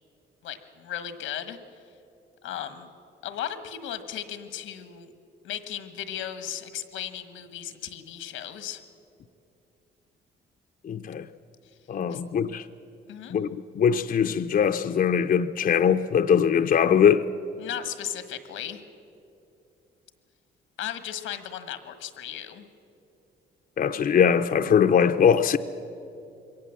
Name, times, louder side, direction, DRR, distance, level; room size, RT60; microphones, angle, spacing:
voice 1, 0.4-1.6 2.4-2.9 3.2-5.1 5.4-8.8 12.1-12.2 13.1-13.4 17.6-18.8 20.8-22.7, left 10 dB, 90° left, 1.4 m, -36 dB
voice 2, 10.8-11.3 11.9-12.6 13.3-17.3 23.8-25.6, left 7 dB, 45° left, 0.6 m, -21 dB
22.5 x 18.0 x 7.5 m
cardioid pair, 90°, 20 cm